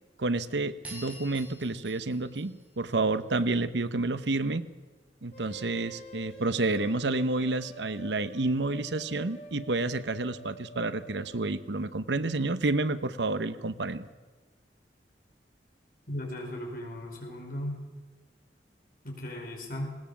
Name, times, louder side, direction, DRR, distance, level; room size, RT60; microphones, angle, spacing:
voice 1, 0.2-4.6 5.2-14.1, right 2 dB, 85° right, 13 dB, 0.9 m, -29 dB
sound 1, 0.8-3.4, equal, 10° right, 7.7 m, -47 dB
sound 2, 5.3-11.5, right 1 dB, 40° left, 3.4 m, -48 dB
voice 2, 16.1-17.8 19.0-20.0, left 1 dB, 55° left, 0 dB, 5.3 m, -37 dB
19.5 x 18.0 x 7.4 m, 1.3 s
head